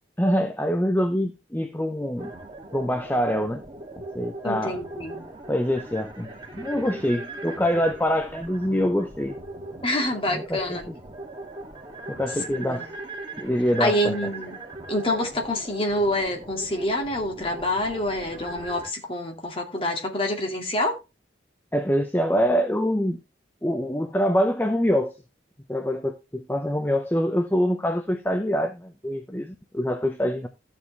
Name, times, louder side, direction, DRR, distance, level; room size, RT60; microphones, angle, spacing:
voice 1, 0.2-2.3 2.7-3.6 4.1-4.8 5.5-9.4 10.3-10.9 12.1-12.9 13.4-14.2 21.7-23.2 23.6-25.2 25.7-30.5, equal, 10° left, 0.7 m, -25 dB
sound 1, 2.2-18.9, right 2 dB, 25° right, 2.5 m, -39 dB
voice 2, 4.4-5.2 9.8-10.9 12.5-12.9 13.8-14.6 14.9-21.0, left 1 dB, 30° left, 2.5 m, -27 dB
13.5 x 7.3 x 3.4 m
head